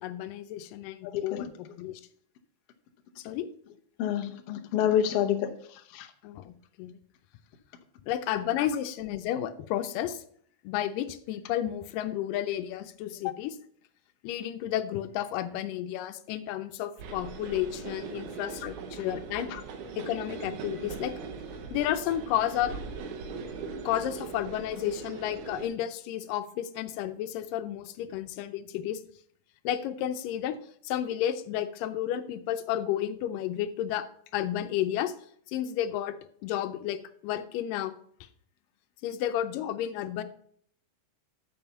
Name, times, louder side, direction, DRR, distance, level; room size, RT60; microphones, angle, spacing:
voice 1, 0.0-2.0 3.2-3.5 6.2-6.5 6.8-7.0 8.1-10.2 10.6-13.6 14.2-19.5 20.0-21.1 21.7-22.7 23.9-29.0 29.6-30.6 30.8-34.0 34.3-35.1 35.5-37.9 39.0-40.2, left 11 dB, 90° left, 2.3 m, -32 dB
voice 2, 1.0-1.4 4.0-5.5 5.9-6.1 8.6-8.7 19.5-19.6, left 10 dB, 70° left, 1.4 m, -28 dB
sound 1, 17.0-25.7, right 5 dB, 75° right, 2.4 m, -40 dB
7.2 x 5.5 x 6.8 m
omnidirectional pair, 3.8 m